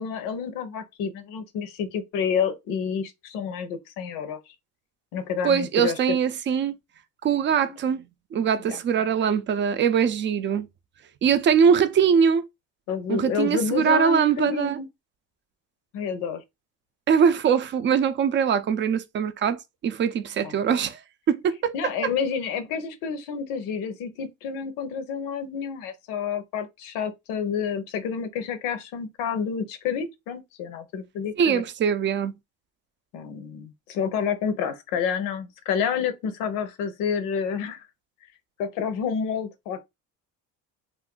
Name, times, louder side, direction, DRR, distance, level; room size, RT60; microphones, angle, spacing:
voice 1, 0.0-4.4 5.1-6.2 7.7-7.8 8.7-8.8 12.9-14.9 15.9-16.4 20.4-20.8 21.7-31.6 33.1-37.9 38.6-39.8, left 6 dB, 85° left, 0.8 m, -29 dB
voice 2, 5.4-6.7 7.2-10.7 11.2-12.4 13.1-14.8 17.1-21.0 21.3-21.7 31.4-32.3, right 7 dB, 35° right, 0.4 m, -22 dB
2.5 x 2.5 x 3.7 m
cardioid pair, 125°, 33 cm